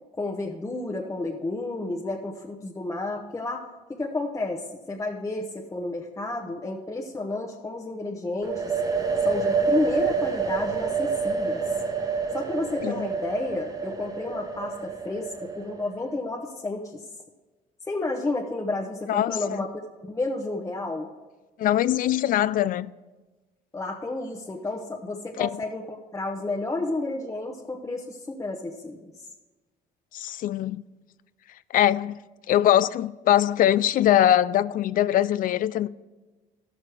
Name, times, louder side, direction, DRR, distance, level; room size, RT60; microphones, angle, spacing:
voice 1, 0.1-3.6 3.9-8.7 9.2-11.6 12.3-17.0 17.9-19.7 20.1-21.1 23.7-29.1, left 2 dB, 20° left, 0.9 m, -31 dB
sound 1, 8.4-16.1, right 5 dB, 20° right, 1.1 m, -28 dB
voice 2, 19.1-19.6 21.6-22.9 25.4-25.5 30.1-30.8 31.7-32.2 32.5-35.9, left 12 dB, 55° left, 0.4 m, -22 dB
13.5 x 6.3 x 4.8 m
cardioid pair, 110°, 17 cm